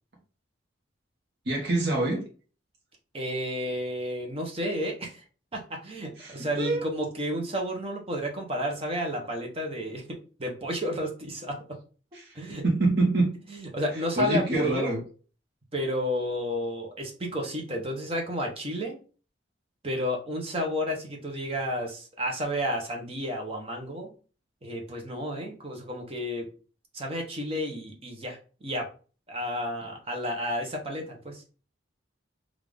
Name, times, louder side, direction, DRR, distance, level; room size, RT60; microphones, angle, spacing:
voice 1, 1.5-2.2 6.2-6.9 12.1-12.3 12.6-13.3 14.2-15.0, right 2 dB, 55° right, -2 dB, 0.9 m, -25 dB
voice 2, 3.1-5.2 5.5-11.6 12.3-12.6 13.5-14.9 15.7-19.0 19.8-24.1 24.6-26.5 26.9-28.9 29.3-31.4, equal, 30° right, 1 dB, 0.9 m, -31 dB
3.7 x 2.5 x 3.4 m, 0.37 s
head